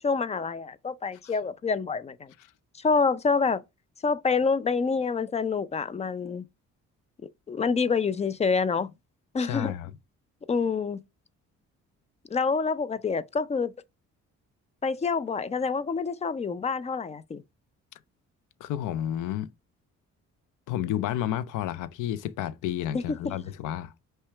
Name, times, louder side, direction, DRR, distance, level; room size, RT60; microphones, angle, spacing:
voice 1, 0.0-2.3 2.8-3.6 4.0-6.4 7.5-8.9 9.3-9.7 10.5-11.0 12.3-13.7 14.8-17.4 22.9-23.4, left 5 dB, 20° left, 0.4 m, -27 dB
voice 2, 9.5-9.9 18.6-19.5 20.7-23.9, left 11 dB, 85° left, 0.5 m, -31 dB
5.6 x 2.3 x 3.4 m
cardioid pair, 90°, 30 cm